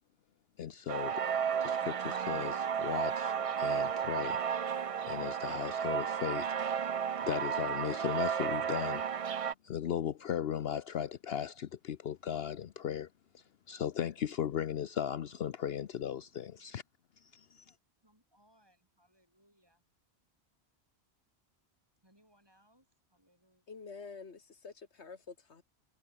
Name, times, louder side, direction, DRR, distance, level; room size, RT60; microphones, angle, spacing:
voice 1, 0.6-1.2 1.6-4.4 5.1-6.5 7.1-9.0 9.6-13.1 13.3-16.8 17.2-17.7, left 9 dB, 65° left, 0.9 m, -37 dB
sound 1, 0.9-9.5, right 7 dB, 45° right, 0.5 m, -33 dB
voice 2, 17.6-19.8 22.0-23.6, equal, 20° right, 7.3 m, -69 dB
voice 3, 23.7-25.6, left 5 dB, 85° left, 2.1 m, -48 dB
omnidirectional pair, 1.1 m